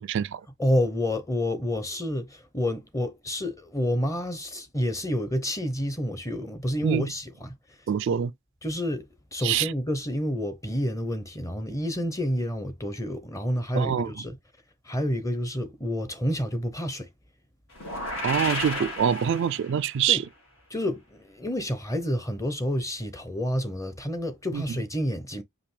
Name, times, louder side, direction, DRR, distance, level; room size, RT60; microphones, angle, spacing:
voice 1, 0.0-0.4 6.8-7.0 7.9-8.3 9.4-9.7 13.7-14.1 18.2-20.2 24.5-24.6, right 8 dB, 60° right, 0.3 m, -25 dB
voice 2, 0.6-7.6 8.6-14.4 14.8-17.1 20.1-20.2 20.7-25.4, equal, 15° left, 0.8 m, -29 dB
sound 1, 17.7-19.9, left 2 dB, 70° left, 2.4 m, -32 dB
5.1 x 2.8 x 3.2 m
head